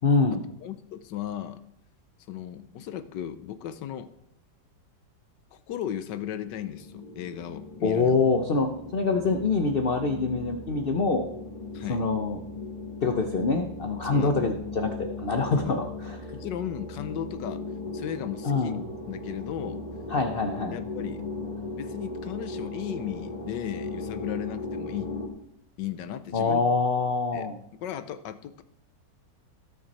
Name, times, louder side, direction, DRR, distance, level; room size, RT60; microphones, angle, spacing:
voice 1, 0.0-0.4 7.8-11.3 11.9-12.4 13.0-15.8 18.4-18.9 20.1-20.8 26.3-27.6, left 4 dB, 55° left, 5 dB, 0.6 m, -25 dB
voice 2, 0.6-1.6 2.3-4.1 5.5-8.2 11.7-12.0 14.0-14.4 15.6-15.8 16.3-17.6 17.9-18.7 19.1-19.8 20.7-21.3 21.7-25.1 25.8-26.6 27.3-27.5 27.8-28.6, left 10 dB, 75° left, 12 dB, 1.4 m, -36 dB
sound 1, 6.4-25.3, left 2 dB, 20° left, 1.6 m, -38 dB
17.5 x 6.1 x 4.2 m, 0.76 s
omnidirectional pair, 2.0 m